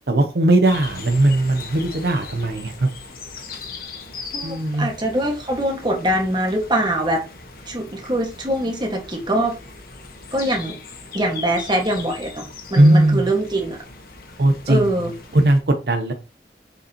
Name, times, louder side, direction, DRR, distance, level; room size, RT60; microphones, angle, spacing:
voice 1, 0.1-2.9 4.4-4.9 12.8-13.3 14.4-14.9 15.3-16.1, right 1 dB, 65° right, 0.7 m, -18 dB
sound 1, 0.6-15.6, left 4 dB, 55° left, 1.4 m, -39 dB
voice 2, 4.3-7.2 7.7-9.6 10.3-10.7 11.1-12.4 12.7-13.8 14.7-15.1, right 1 dB, 25° right, 1.6 m, -23 dB
7.0 x 5.3 x 2.9 m
head